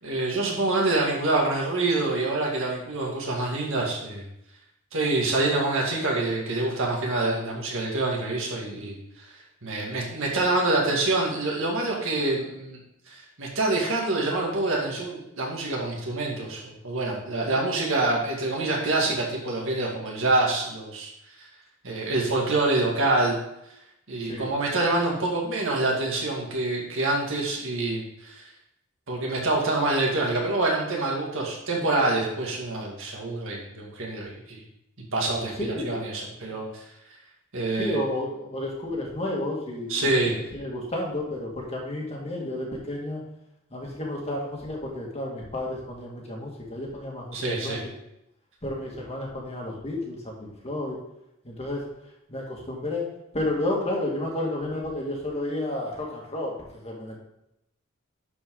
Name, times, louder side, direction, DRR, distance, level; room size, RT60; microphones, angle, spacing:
voice 1, 0.0-4.2 4.9-8.9 9.6-12.8 13.1-21.1 21.8-23.4 24.1-28.4 29.1-34.6 35.1-36.6 37.5-38.0 39.9-40.3 47.3-47.8, right 2 dB, 65° right, -2 dB, 2.2 m, -26 dB
voice 2, 35.6-36.0 37.8-40.2 40.5-43.2 43.7-47.8 48.6-51.0 51.4-51.9 52.3-57.2, left 1 dB, 30° left, -2 dB, 2.0 m, -31 dB
11.0 x 4.9 x 3.9 m, 0.82 s
head